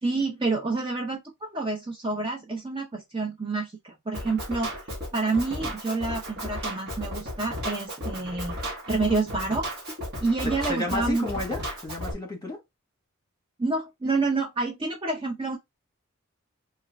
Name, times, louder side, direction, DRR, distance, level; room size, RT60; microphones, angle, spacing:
voice 1, 0.0-4.7 5.1-8.6 8.9-9.7 10.2-11.3 13.6-15.6, right 3 dB, 20° right, 0.5 m, -28 dB
Drum kit, 4.1-12.1, equal, 45° right, 1.4 m, -34 dB
voice 2, 10.4-12.6, left 2 dB, 15° left, 1.2 m, -32 dB
3.3 x 2.3 x 3.3 m
head